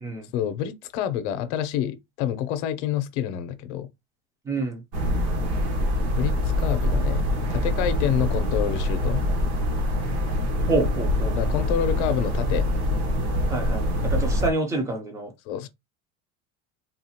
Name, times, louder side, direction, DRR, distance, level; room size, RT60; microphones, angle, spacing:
voice 1, 0.3-3.9 6.1-7.2 7.5-9.2 11.3-12.7 15.5-15.7, left 10 dB, 65° left, 0.7 m, -28 dB
voice 2, 4.5-4.8 10.7-11.4 13.5-15.3, right 3 dB, 10° right, 0.6 m, -27 dB
sound 1, 4.9-14.5, left 1 dB, 50° right, 1.1 m, -24 dB
3.9 x 2.4 x 2.8 m
cardioid pair, 170°, 38 cm